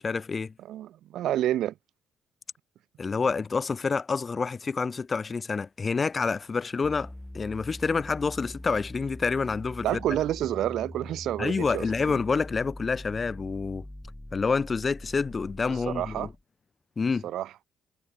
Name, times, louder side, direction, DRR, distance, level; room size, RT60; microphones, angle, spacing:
voice 1, 0.0-0.5 3.0-9.8 11.4-13.8 14.3-16.3 17.0-17.3, left 4 dB, 35° left, 1.3 m, -28 dB
voice 2, 0.7-1.7 9.8-12.2 15.7-16.3 17.2-17.7, right 12 dB, 80° right, 6.6 m, -29 dB
sound 1, 6.8-16.4, left 1 dB, 5° left, 4.1 m, -43 dB
cardioid pair, 90°, 0 cm